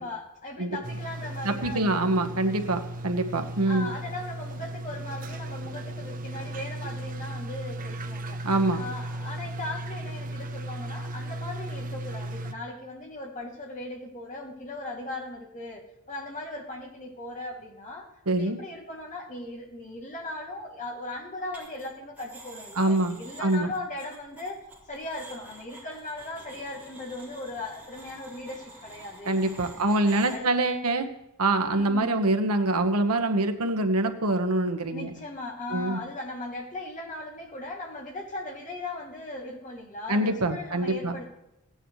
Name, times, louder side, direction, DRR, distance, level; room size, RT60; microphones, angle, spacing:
voice 1, 0.0-2.1 3.6-8.4 8.8-18.1 18.3-29.4 29.7-30.5 31.7-32.1 34.9-41.3, left 2 dB, 35° left, -1 dB, 2.7 m, -38 dB
sound 1, 0.8-12.5, right 1 dB, 40° right, 0.8 m, -36 dB
voice 2, 1.4-3.9 8.4-8.8 18.3-18.6 22.7-23.7 29.2-31.1 31.4-35.1 35.7-36.0 40.1-41.2, right 2 dB, 85° right, 6 dB, 1.3 m, -25 dB
sound 2, 21.5-21.9 22.2-30.4, right 2 dB, 10° right, 3.9 m, -48 dB
16.5 x 9.8 x 3.2 m, 0.91 s
head